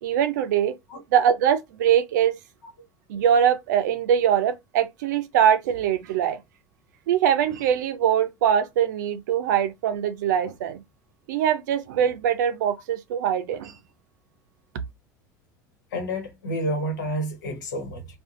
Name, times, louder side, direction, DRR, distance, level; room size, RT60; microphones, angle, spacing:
voice 1, 0.0-0.7 1.1-2.3 3.1-6.4 7.1-10.8 11.3-13.8, right 9 dB, 80° right, 0.5 m, -22 dB
voice 2, 15.9-18.1, equal, 85° left, 1.1 m, -29 dB
2.6 x 2.3 x 3.6 m
hypercardioid pair, 80°, 10 cm